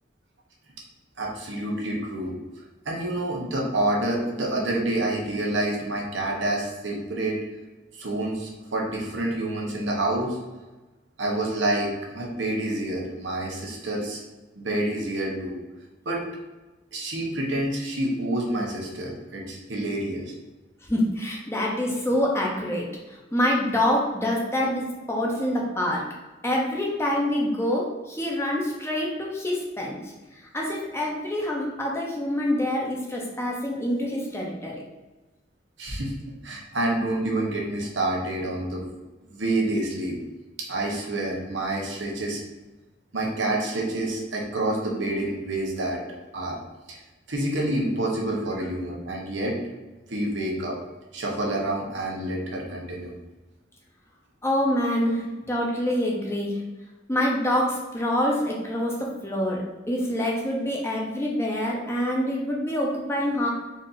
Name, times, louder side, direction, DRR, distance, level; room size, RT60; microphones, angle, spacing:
voice 1, 1.2-2.3 2.8-7.4 7.9-10.4 11.2-14.2 14.6-15.5 16.0-16.2 16.9-20.3 35.8-36.1 36.4-38.8 39.3-40.1 40.7-42.4 43.1-46.0 46.3-46.6 46.9-47.0 47.3-49.5 50.1-50.8 51.1-53.1, right 1 dB, 80° right, -1 dB, 1.1 m, -28 dB
voice 2, 20.8-26.0 26.4-30.0 30.3-34.8 54.4-56.6 57.1-63.5, left 1 dB, 15° left, -2 dB, 0.7 m, -26 dB
4.2 x 2.7 x 4.0 m, 1.1 s
head